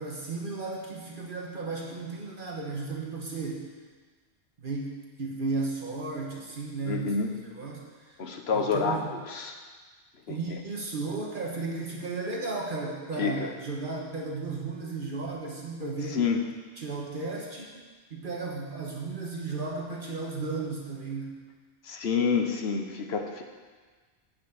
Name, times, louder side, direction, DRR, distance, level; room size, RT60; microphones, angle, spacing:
voice 1, 0.0-3.7 4.6-7.1 7.5-7.8 8.5-9.1 10.3-16.2 16.8-17.8 18.1-21.4, right 3 dB, 50° right, -2 dB, 1.3 m, -34 dB
voice 2, 6.8-7.3 8.2-9.5 10.3-10.6 13.2-13.5 16.1-16.4 21.8-23.4, left 5 dB, 70° left, 3 dB, 1.2 m, -28 dB
8.7 x 6.2 x 7.1 m, 1.4 s
omnidirectional pair, 1.1 m